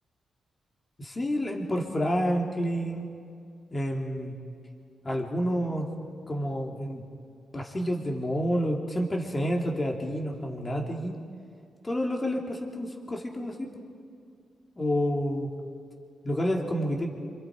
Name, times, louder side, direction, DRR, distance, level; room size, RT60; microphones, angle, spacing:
voice 1, 1.0-3.1 3.7-4.4 5.0-5.9 6.3-7.1 7.5-11.2 11.8-13.7 14.8-15.5 16.2-17.1, equal, 25° left, 0 dB, 3.4 m, -29 dB
29.5 x 27.5 x 5.2 m, 2.4 s
cardioid pair, 115°, 0 cm